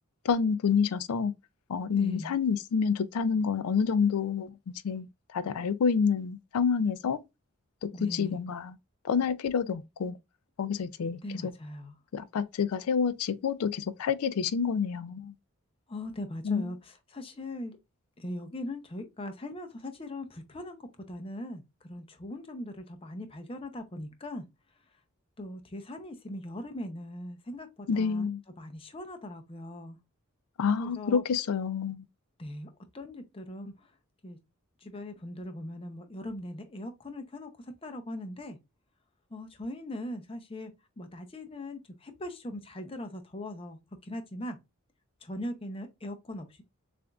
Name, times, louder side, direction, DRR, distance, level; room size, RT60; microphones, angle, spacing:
voice 1, 0.3-1.3 1.7-4.5 4.8-5.1 5.3-7.2 7.8-8.7 9.1-10.2 10.6-11.5 12.1-15.3 16.4-16.7 27.9-28.4 30.6-32.0, left 6 dB, 85° left, 0.4 m, -28 dB
voice 2, 1.9-2.4 7.9-8.4 11.2-11.9 15.9-17.8 18.2-20.8 21.1-21.6 21.9-24.4 25.4-28.3 28.6-30.0 30.8-31.2 32.4-32.7 32.9-33.7 34.2-34.4 34.8-38.6 39.3-40.7 41.0-44.6 45.2-46.6, left 1 dB, 25° left, 0.6 m, -40 dB
6.8 x 2.5 x 2.3 m
head